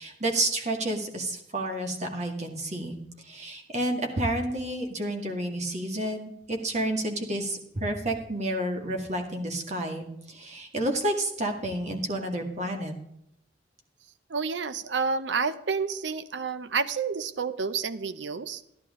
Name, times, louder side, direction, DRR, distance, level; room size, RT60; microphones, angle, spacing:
voice 1, 0.0-3.0 3.2-12.9, right 1 dB, 40° right, 3 dB, 2.0 m, -30 dB
voice 2, 14.3-18.6, right 5 dB, 80° right, 13 dB, 0.7 m, -29 dB
14.0 x 11.0 x 3.7 m, 0.80 s
head